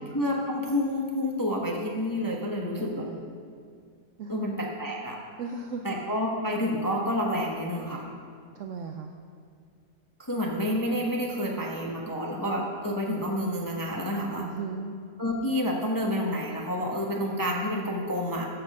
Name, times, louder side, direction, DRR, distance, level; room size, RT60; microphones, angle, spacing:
voice 1, 0.1-3.1 4.3-5.2 5.8-8.1 10.2-14.5 15.2-18.5, left 1 dB, 20° left, -1 dB, 0.6 m, -29 dB
voice 2, 2.8-3.2 4.2-4.5 5.4-6.0 8.5-9.1 14.4-15.0, right 4 dB, 70° right, 4 dB, 0.7 m, -36 dB
13.0 x 5.9 x 5.3 m, 2.2 s
omnidirectional pair, 1.8 m